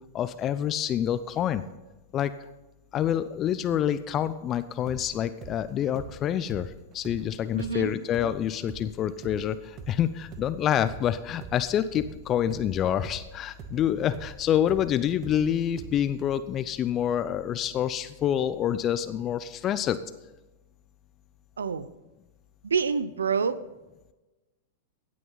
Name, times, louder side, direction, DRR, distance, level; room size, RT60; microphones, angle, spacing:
voice 1, 0.1-1.6 2.1-2.3 2.9-20.0, left 10 dB, 30° left, 13 dB, 0.5 m, -27 dB
sound 1, 4.9-12.7 13.0-16.3, right 5 dB, 35° right, 1.4 m, -44 dB
voice 2, 7.5-7.9 21.6-21.9 22.6-23.6, right 6 dB, 80° right, 16 dB, 0.6 m, -27 dB
16.0 x 8.5 x 4.0 m, 1.1 s
hypercardioid pair, 105°, 0 cm